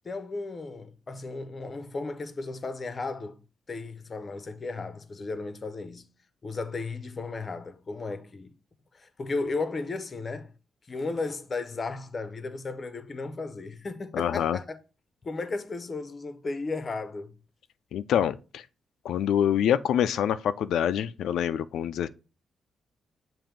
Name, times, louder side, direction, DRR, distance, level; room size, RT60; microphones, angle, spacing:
voice 1, 0.0-3.4 3.7-6.1 6.4-8.5 8.9-10.5 10.9-14.8 15.2-17.3, left 3 dB, 25° left, 0.6 m, -35 dB
voice 2, 14.1-14.6 17.9-18.7 19.0-22.1, left 9 dB, 90° left, 0.3 m, -26 dB
7.5 x 2.6 x 5.0 m
wide cardioid pair, 170°, 0 cm